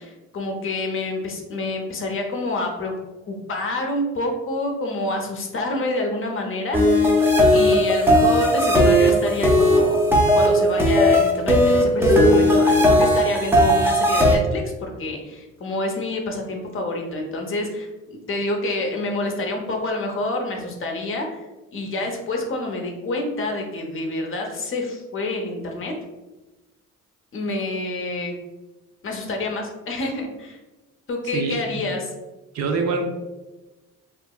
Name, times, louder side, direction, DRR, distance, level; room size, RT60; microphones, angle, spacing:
voice 1, 0.0-2.9 3.3-7.1 7.5-10.1 10.3-21.4 21.7-25.9 27.3-28.4 29.0-30.6 31.1-32.1, left 2 dB, 45° left, 2 dB, 0.6 m, -27 dB
sound 1, 6.7-14.4, equal, 10° right, 0.5 m, -17 dB
voice 2, 31.3-31.8 32.5-33.0, right 4 dB, 60° right, 4 dB, 0.5 m, -25 dB
2.7 x 2.4 x 2.2 m, 1.1 s
cardioid pair, 90°, 30 cm